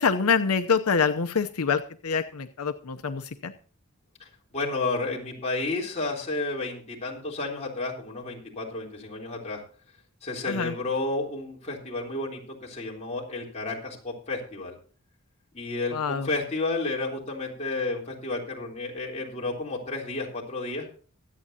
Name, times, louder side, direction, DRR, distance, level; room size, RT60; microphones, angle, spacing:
voice 1, 0.0-3.5 10.4-10.7 15.9-16.3, left 5 dB, 90° left, 8 dB, 0.7 m, -26 dB
voice 2, 4.2-9.6 10.2-14.8 15.5-20.9, left 3 dB, 30° left, -2 dB, 3.6 m, -31 dB
23.5 x 8.6 x 2.8 m, 0.41 s
head